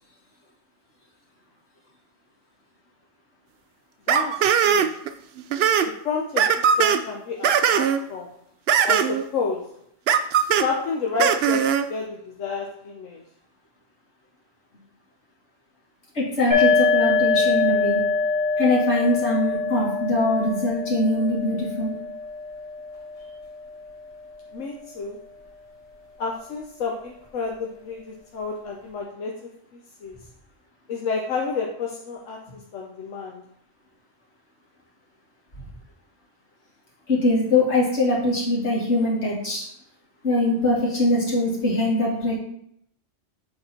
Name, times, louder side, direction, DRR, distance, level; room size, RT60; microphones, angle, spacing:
voice 1, 4.1-4.9 5.8-8.3 8.9-9.7 10.6-13.2 24.5-25.2 26.2-29.3 30.0-30.2 30.9-32.4 32.7-33.4, left 4 dB, 85° left, 0 dB, 1.2 m, -30 dB
sound 1, 4.1-5.1 5.4-5.9 6.4-7.0 7.4-8.0 8.7-9.2 10.1-10.7 11.2-11.8, right 8 dB, 65° right, 0.7 m, -20 dB
voice 2, 16.1-18.0 18.6-22.0 37.1-39.7 40.2-42.3, left 2 dB, 65° left, -6 dB, 2.6 m, -22 dB
sound 2, 16.5-24.0, left 4 dB, 20° left, 2.3 m, -24 dB
7.7 x 4.1 x 4.4 m, 0.70 s
omnidirectional pair, 1.3 m